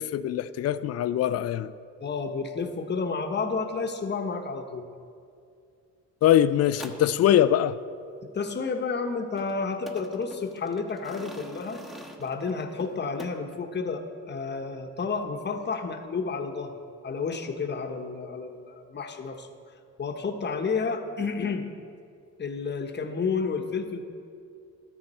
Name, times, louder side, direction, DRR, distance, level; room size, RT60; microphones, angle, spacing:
voice 1, 0.0-1.7 6.2-7.8, left 11 dB, 55° left, 0.4 m, -22 dB
voice 2, 2.0-4.8 8.3-11.8 12.2-16.7 17.0-19.5 20.0-21.6 22.4-24.0, left 4 dB, 35° left, 1.1 m, -31 dB
sound 1, 6.6-7.1 9.4-13.6, equal, ahead, 1.2 m, -45 dB
13.0 x 9.8 x 4.3 m
cardioid pair, 90°, 30 cm